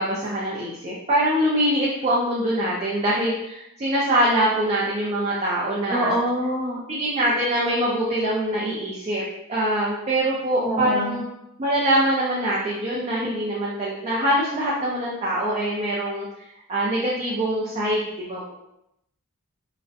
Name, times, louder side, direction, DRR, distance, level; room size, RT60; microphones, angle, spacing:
voice 1, 0.0-6.1 6.9-9.2 9.5-11.2 11.6-16.3 16.7-18.5, right 1 dB, 30° right, -6 dB, 0.4 m, -23 dB
voice 2, 5.9-6.8 10.6-11.2, equal, ahead, -9 dB, 0.7 m, -25 dB
2.4 x 2.0 x 2.5 m, 0.83 s
head